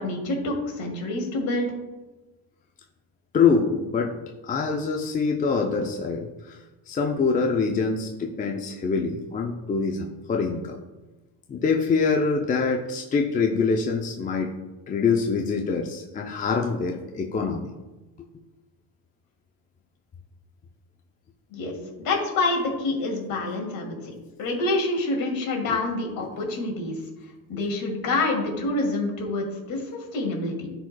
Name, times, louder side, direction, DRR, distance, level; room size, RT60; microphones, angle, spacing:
voice 1, 0.0-1.7 21.5-24.0 24.4-27.0 27.5-29.8 30.1-30.7, left 2 dB, 55° left, 0 dB, 2.4 m, -27 dB
voice 2, 3.3-4.2 4.4-6.6 6.9-10.8 11.5-14.5 14.9-17.7 25.7-25.8 27.5-27.6, left 5 dB, 20° left, 2 dB, 0.5 m, -25 dB
14.5 x 4.9 x 2.2 m, 1.1 s
cardioid pair, 125°, 42 cm